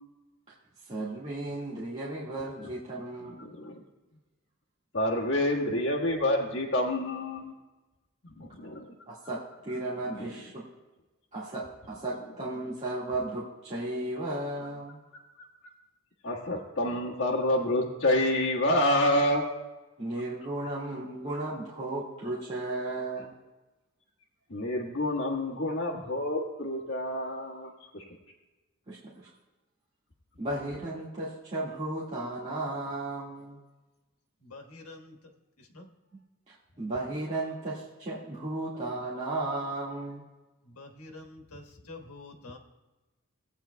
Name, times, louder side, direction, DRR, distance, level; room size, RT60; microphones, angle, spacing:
voice 1, 0.8-3.4 9.1-10.6 11.3-15.0 20.0-23.4 28.9-29.3 30.4-33.6 36.5-40.2, right 2 dB, 30° right, -8 dB, 1.8 m, -35 dB
voice 2, 3.4-3.8 4.9-7.5 8.4-8.9 16.2-19.5 24.5-28.0, left 1 dB, 55° left, -5 dB, 1.6 m, -28 dB
voice 3, 34.4-35.2 35.6-35.9 40.7-42.6, left 2 dB, 80° left, 2 dB, 1.5 m, -47 dB
18.0 x 8.7 x 2.3 m, 1.1 s
head